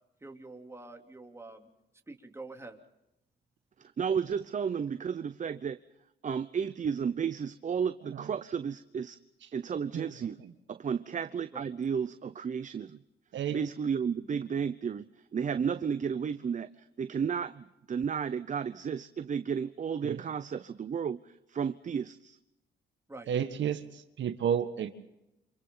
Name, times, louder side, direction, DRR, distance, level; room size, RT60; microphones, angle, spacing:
voice 1, 0.2-1.7 2.1-2.8 11.5-11.6 23.1-23.3, right 2 dB, 15° right, 3 dB, 3.2 m, -46 dB
voice 2, 3.8-5.8 6.2-9.2 9.5-10.4 10.7-13.0 13.5-22.4, right 7 dB, 40° right, 12 dB, 0.8 m, -33 dB
voice 3, 23.3-23.8 24.2-24.9, right 8 dB, 65° right, 8 dB, 1.7 m, -30 dB
29.5 x 27.0 x 3.9 m, 0.89 s
cardioid pair, 90°, 20 cm